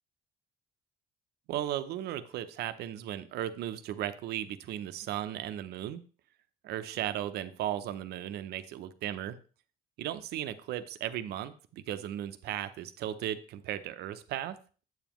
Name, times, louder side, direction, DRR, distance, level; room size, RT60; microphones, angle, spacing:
voice 1, 1.5-6.0 6.6-9.4 10.0-14.6, right 12 dB, 75° right, 10 dB, 0.7 m, -36 dB
8.0 x 7.1 x 3.0 m, 0.37 s
cardioid pair, 110°, 17 cm